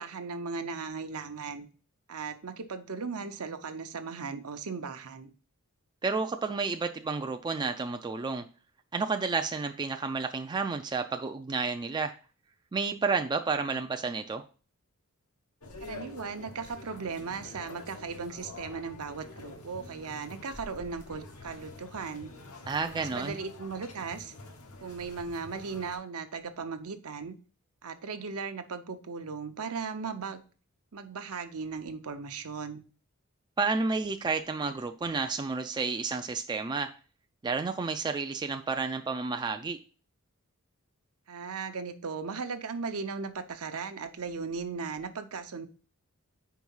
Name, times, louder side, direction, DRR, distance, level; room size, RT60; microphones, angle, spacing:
voice 1, 0.0-1.7 2.1-5.3 15.8-22.3 23.0-24.3 24.8-27.3 27.8-30.4 30.9-32.8 41.3-45.7, right 5 dB, 70° right, 8 dB, 0.7 m, -37 dB
voice 2, 6.0-8.4 8.9-12.1 12.7-14.4 22.7-23.4 33.6-36.9 37.4-39.8, right 4 dB, 20° right, 6 dB, 0.3 m, -31 dB
sound 1, 15.6-26.0, left 2 dB, 85° left, 1.1 m, -47 dB
4.7 x 4.6 x 5.4 m, 0.37 s
head